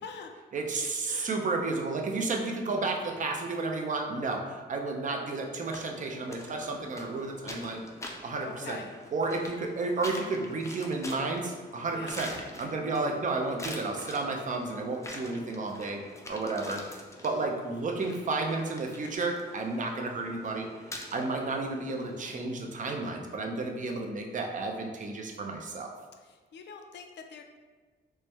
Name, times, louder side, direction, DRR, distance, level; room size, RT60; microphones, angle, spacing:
voice 1, 0.5-7.8 8.2-8.8 9.1-16.0 16.3-17.0 17.2-20.7 21.1-25.9, right 3 dB, 45° right, 2 dB, 0.5 m, -32 dB
voice 2, 1.1-1.4 8.4-8.9 11.9-12.1 26.2-27.4, left 5 dB, 70° left, 4 dB, 0.4 m, -44 dB
sound 1, 5.7-22.5, left 1 dB, 15° left, 0.4 m, -45 dB
4.5 x 2.1 x 3.3 m, 1.4 s
wide cardioid pair, 120°, 19 cm